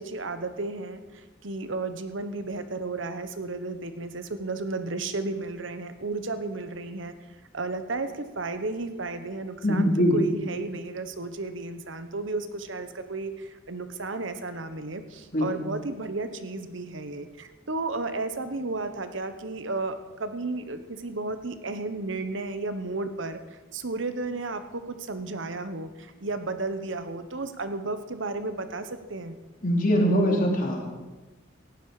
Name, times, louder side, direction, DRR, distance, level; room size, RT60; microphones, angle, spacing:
voice 1, 0.0-7.1 7.5-19.9 20.2-23.4 23.7-29.4, right 3 dB, 75° right, 10 dB, 1.1 m, -33 dB
voice 2, 9.6-10.2 15.3-15.5 29.6-30.9, equal, 45° left, 1 dB, 3.1 m, -22 dB
18.0 x 15.5 x 5.0 m, 1.2 s
head